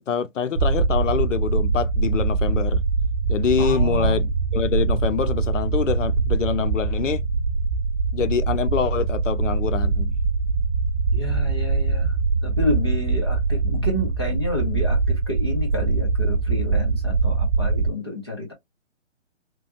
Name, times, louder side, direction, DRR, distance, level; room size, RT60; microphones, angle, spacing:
voice 1, 0.0-2.8 3.3-7.2 8.1-10.1, left 7 dB, 80° left, 0.7 m, -25 dB
sound 1, 0.6-17.9, right 4 dB, 90° right, 0.6 m, -23 dB
voice 2, 3.6-4.2 11.1-12.2 12.4-18.5, left 2 dB, 20° left, 0.7 m, -30 dB
3.3 x 2.2 x 2.4 m
hypercardioid pair, 180°, 37 cm